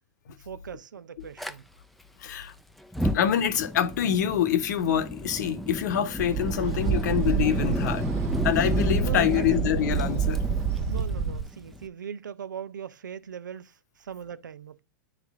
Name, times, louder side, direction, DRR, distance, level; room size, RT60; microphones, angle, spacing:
voice 1, 0.4-1.6 9.0-9.6 10.9-14.8, right 7 dB, 90° right, 0.5 m, -39 dB
Fire, 1.4-1.5 2.8-11.9, left 1 dB, ahead, 0.5 m, -32 dB
voice 2, 2.2-2.5 3.1-8.0 8.4-10.4, left 9 dB, 70° left, 0.9 m, -25 dB
sound 1, 6.2-11.4, right 7 dB, 55° right, 1.4 m, -28 dB
9.7 x 3.3 x 3.5 m
hypercardioid pair, 115°, 10 cm